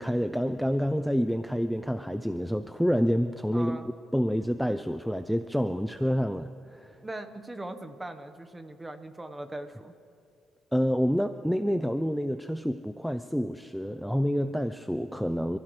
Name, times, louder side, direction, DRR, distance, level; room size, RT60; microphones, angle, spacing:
voice 1, 0.0-3.8 4.1-7.0 10.7-15.6, equal, ahead, 9 dB, 0.5 m, -28 dB
voice 2, 3.5-3.8 7.0-9.9, right 1 dB, 15° right, 8 dB, 1.1 m, -40 dB
28.0 x 15.5 x 3.2 m, 2.5 s
cardioid pair, 90°, 0 cm